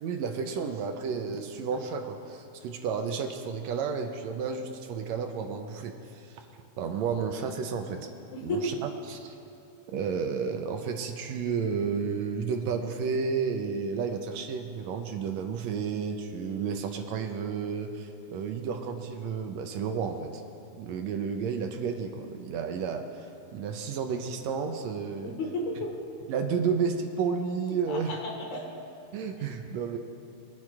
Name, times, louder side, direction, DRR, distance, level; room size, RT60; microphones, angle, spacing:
voice 1, 0.0-6.5 6.8-8.0 8.4-9.4 9.9-20.4 20.8-23.3 23.5-25.3 26.3-28.1 29.1-30.0, right 6 dB, 75° right, 5 dB, 1.8 m, -32 dB
voice 2, 8.3-8.8 25.2-26.0 27.9-28.7, left 1 dB, 80° left, -1 dB, 3.0 m, -33 dB
23.0 x 9.0 x 2.4 m, 2.6 s
omnidirectional pair, 3.3 m